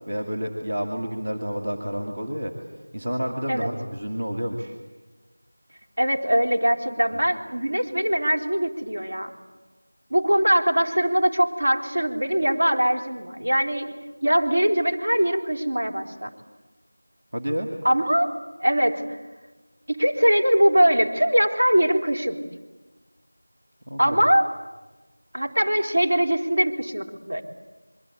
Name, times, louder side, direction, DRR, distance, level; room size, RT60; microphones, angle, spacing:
voice 1, 0.1-2.5 2.9-4.7 17.3-17.7 23.9-24.2, equal, 35° right, 1 dB, 2.6 m, -29 dB
voice 2, 6.0-9.3 10.1-14.0 14.2-16.3 17.8-19.0 19.9-22.4 24.0-24.5 25.3-27.4, equal, 55° right, 2 dB, 3.7 m, -22 dB
27.0 x 23.0 x 8.5 m, 1.2 s
figure-of-eight pair, 175°, 0 cm